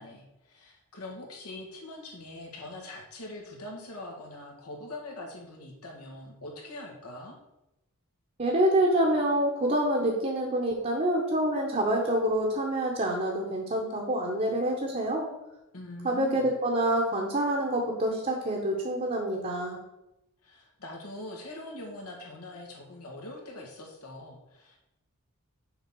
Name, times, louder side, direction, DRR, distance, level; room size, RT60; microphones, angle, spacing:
voice 1, 0.0-7.3 15.7-16.5 20.4-24.8, left 1 dB, 80° left, -1 dB, 2.0 m, -43 dB
voice 2, 8.4-15.3 16.0-19.8, right 1 dB, 35° right, -1 dB, 1.1 m, -27 dB
6.9 x 3.8 x 6.2 m, 0.91 s
head